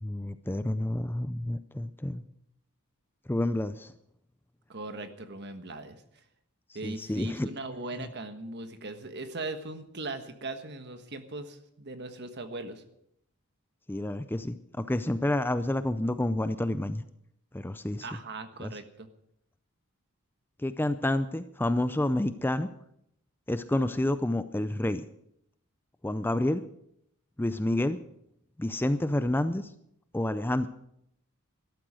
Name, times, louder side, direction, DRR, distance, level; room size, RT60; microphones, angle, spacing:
voice 1, 0.0-2.2 3.3-3.9 6.8-7.5 13.9-17.0 17.5-18.1 18.6-18.7 20.6-22.7 23.5-25.0 26.0-26.6 27.4-28.0 28.6-29.7 30.1-30.7, left 1 dB, 10° left, 12 dB, 0.4 m, -29 dB
voice 2, 4.7-6.0 6.7-12.8 18.0-19.1, right 2 dB, 50° right, 8 dB, 1.4 m, -39 dB
13.0 x 12.5 x 6.3 m, 0.75 s
head